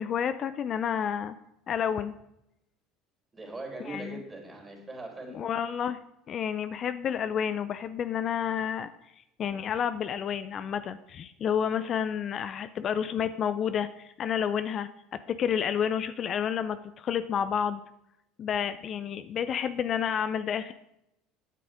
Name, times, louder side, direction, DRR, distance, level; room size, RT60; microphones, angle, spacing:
voice 1, 0.0-1.3 1.7-2.1 3.9-4.2 5.3-6.0 6.3-8.9 9.4-17.8 18.4-20.7, left 8 dB, 45° left, 12 dB, 0.5 m, -30 dB
voice 2, 3.3-5.4, right 2 dB, 20° right, 1 dB, 3.7 m, -40 dB
9.1 x 7.6 x 5.1 m, 0.83 s
hypercardioid pair, 80°, 0 cm